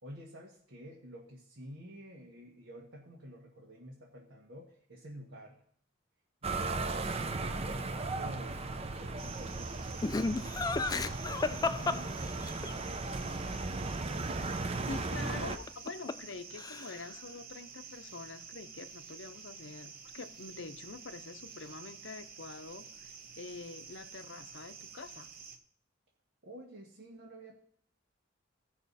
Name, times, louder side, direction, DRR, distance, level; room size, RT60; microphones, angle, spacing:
voice 1, 0.0-5.6 7.3-12.5 26.4-27.6, equal, 75° right, -2 dB, 1.6 m, -50 dB
sound 1, 6.4-15.6, right 3 dB, 30° right, 0.6 m, -36 dB
sound 2, 9.2-25.6, right 6 dB, 50° right, 1.0 m, -50 dB
Laughter, 10.0-12.7 15.5-16.3 16.6-17.1, left 3 dB, 20° left, 0.4 m, -33 dB
voice 2, 14.9-25.3, left 3 dB, 65° left, 10 dB, 0.7 m, -46 dB
16.5 x 5.7 x 4.1 m, 0.63 s
head